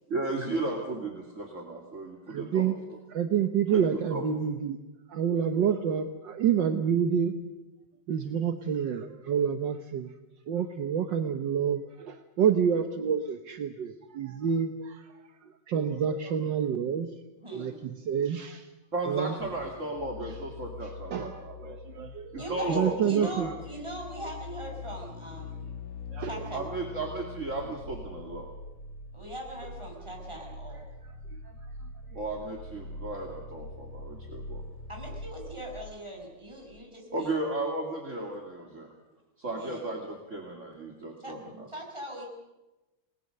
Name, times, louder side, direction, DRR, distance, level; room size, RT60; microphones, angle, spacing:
voice 1, 0.1-2.7 3.7-4.2 18.9-21.8 22.3-23.6 26.5-28.5 32.1-34.6 37.1-38.9 39.4-41.7, right 2 dB, 40° right, 0 dB, 2.9 m, -34 dB
voice 2, 2.3-2.7 3.1-4.8 5.1-7.4 8.1-10.1 10.5-15.1 15.7-17.1 17.5-18.7 19.1-19.3 21.1-23.5 26.1-26.3, right 8 dB, 65° right, 7 dB, 1.7 m, -28 dB
voice 3, 17.4-17.8 22.4-25.7 26.2-26.6 29.1-30.9 34.9-37.5 39.6-39.9 41.2-41.3 41.7-42.3, right 1 dB, 15° right, 0 dB, 6.2 m, -41 dB
sound 1, 19.4-36.9 37.2-37.3, left 3 dB, 90° left, 2.6 m, -43 dB
29.0 x 19.5 x 6.7 m, 1.1 s
omnidirectional pair, 2.2 m